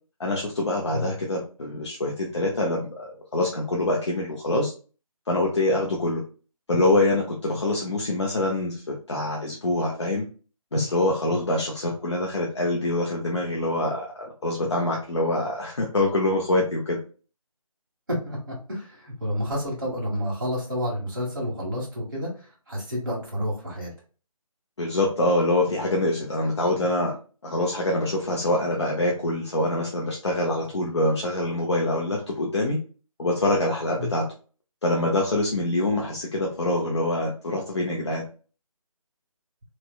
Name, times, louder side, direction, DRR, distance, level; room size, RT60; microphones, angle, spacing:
voice 1, 0.2-4.7 5.3-6.2 6.7-10.3 10.7-17.0 24.8-27.2 27.4-32.8 33.2-34.3 34.8-38.2, left 1 dB, 50° left, -2 dB, 0.7 m, -25 dB
voice 2, 18.1-23.9 34.0-34.1, equal, 35° right, -4 dB, 1.5 m, -30 dB
3.1 x 2.8 x 2.2 m, 0.37 s
hypercardioid pair, 180°, 18 cm